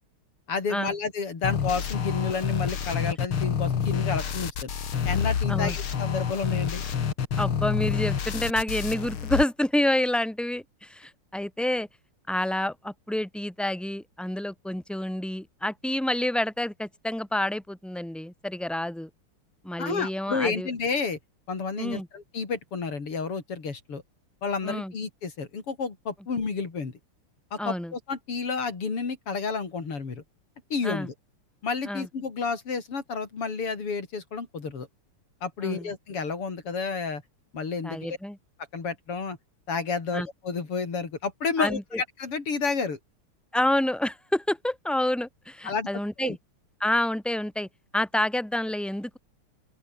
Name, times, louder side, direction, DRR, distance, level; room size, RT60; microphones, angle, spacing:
voice 1, 0.5-4.7 5.1-6.8 19.8-21.2 21.5-24.0 24.4-26.9 27.5-30.2 30.7-31.1 31.6-34.9 35.4-37.2 37.5-38.2 38.7-39.4 39.7-43.0 45.6-45.9 46.2-46.4, left 5 dB, 90° left, 4.7 m, -30 dB
sound 1, 1.4-9.4, left 7 dB, 70° left, 2.9 m, -28 dB
voice 2, 7.4-11.9 12.3-19.1 19.6-20.7 21.8-22.1 24.6-24.9 27.6-27.9 30.8-31.1 31.9-32.1 35.6-35.9 37.8-38.4 40.1-40.3 41.6-42.0 43.5-46.4 46.8-47.7 47.9-49.2, left 1 dB, ahead, 4.6 m, -28 dB
open air
omnidirectional pair, 2.4 m